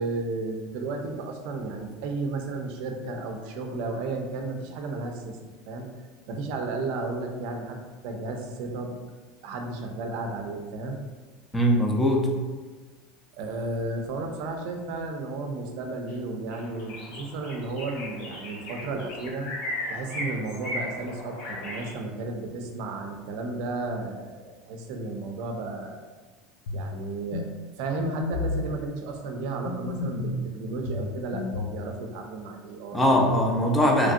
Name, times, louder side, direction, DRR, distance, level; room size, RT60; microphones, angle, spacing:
voice 1, 0.0-5.4 5.7-5.9 6.3-7.8 8.0-9.0 9.4-11.0 13.3-19.5 19.9-26.0 26.7-27.4 27.7-33.2, right 3 dB, 65° right, 3 dB, 0.5 m, -33 dB
voice 2, 11.5-12.3 32.9-34.1, equal, 10° left, 0 dB, 0.4 m, -21 dB
sound 1, 16.1-16.2 16.5-21.9, left 1 dB, 60° left, 0.7 m, -36 dB
sound 2, 26.7-26.9 27.3-27.5 28.0-28.7 29.7-30.4 30.9-31.8, left 3 dB, 90° left, 0.3 m, -31 dB
3.0 x 2.6 x 2.5 m, 1.3 s
supercardioid pair, 140°, 0 cm